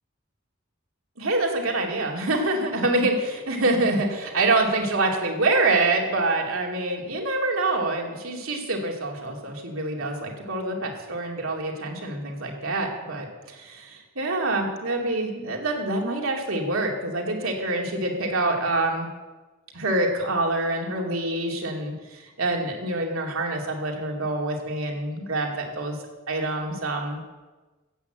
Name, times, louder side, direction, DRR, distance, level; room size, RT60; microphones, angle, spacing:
voice 1, 1.2-19.1 19.7-26.0 26.3-27.2, right 2 dB, 75° right, 1 dB, 2.7 m, -26 dB
15.5 x 8.6 x 8.0 m, 1.2 s
head